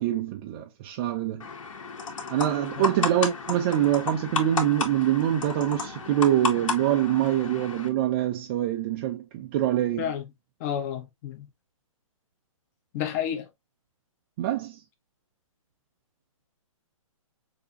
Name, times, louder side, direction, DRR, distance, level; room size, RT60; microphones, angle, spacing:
voice 1, 0.0-1.5 2.3-10.1 14.4-14.8, right 12 dB, 20° right, 0.4 m, -25 dB
sound 1, 1.4-7.9, left 4 dB, 65° left, 2.3 m, -33 dB
voice 2, 10.6-11.5 12.9-13.5, left 9 dB, 25° left, 0.9 m, -30 dB
6.7 x 2.8 x 2.7 m
hypercardioid pair, 155°, 18 cm